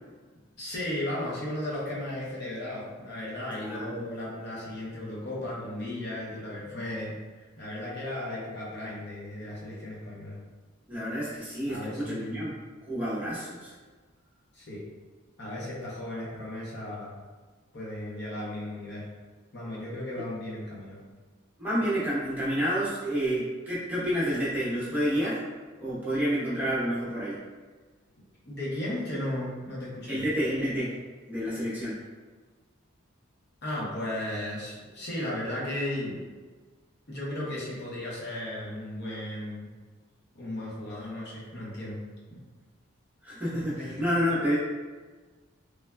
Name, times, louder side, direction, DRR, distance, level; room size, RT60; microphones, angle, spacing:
voice 1, 0.6-10.4 11.7-12.5 14.5-14.8 15.4-17.1 17.7-19.1 19.5-21.0 28.5-30.3 33.6-36.3 37.1-39.7 40.3-42.0 42.3-42.4 43.7-44.0, left 1 dB, 50° left, -6 dB, 0.7 m, -35 dB
voice 2, 3.5-4.0 10.9-12.5 12.9-13.7 21.6-25.4 25.8-27.4 30.1-30.9 31.3-32.0 43.2-44.5, equal, 10° right, -10 dB, 0.7 m, -29 dB
3.1 x 2.2 x 2.2 m, 1.4 s
head